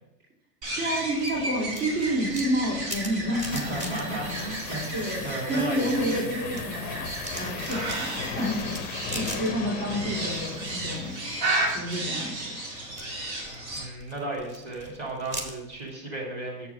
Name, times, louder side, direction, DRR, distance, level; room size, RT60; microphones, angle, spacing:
sound 1, 0.6-5.3 5.6-10.1 10.3-10.9 11.4-15.9, right 1 dB, 15° right, 0.8 m, -41 dB
sound 2, 0.6-13.9, right 2 dB, 80° right, 2.3 m, -33 dB
voice 1, 0.8-3.7 4.9-7.1 7.3-11.1 11.6-12.5, equal, 65° right, -6 dB, 3.1 m, -29 dB
sound 3, 2.8-11.6, left 6 dB, 20° left, 0.4 m, -38 dB
voice 2, 3.4-6.2 13.8-16.7, right 1 dB, 30° right, -3 dB, 1.9 m, -34 dB
6.8 x 4.6 x 5.7 m, 0.91 s
hypercardioid pair, 125°, 48 cm